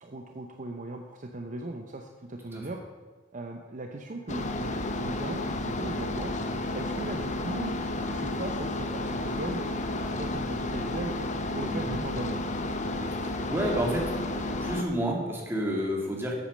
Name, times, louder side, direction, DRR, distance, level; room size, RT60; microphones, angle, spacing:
voice 1, 0.0-2.8 3.3-6.3 6.7-7.8 8.1-11.1 11.5-12.4, right 2 dB, 45° right, 3 dB, 0.7 m, -38 dB
sound 1, 4.3-14.8, left 2 dB, 40° left, 0.9 m, -32 dB
voice 2, 13.1-14.1 14.6-16.4, right 1 dB, 15° right, -2 dB, 2.3 m, -30 dB
8.5 x 8.4 x 6.5 m, 1.4 s
head